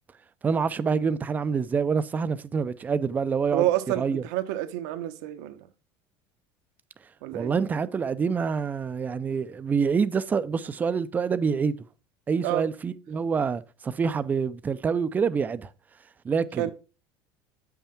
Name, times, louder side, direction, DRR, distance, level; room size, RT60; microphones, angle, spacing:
voice 1, 0.4-3.7 4.0-4.2 7.3-11.7 12.3-15.7 16.2-16.7, right 5 dB, 15° right, 0.4 m, -26 dB
voice 2, 3.5-5.7 7.2-7.5 12.4-12.6 16.6-16.7, right 14 dB, 80° right, 0.9 m, -28 dB
8.6 x 5.7 x 4.3 m
cardioid pair, 155°, 10 cm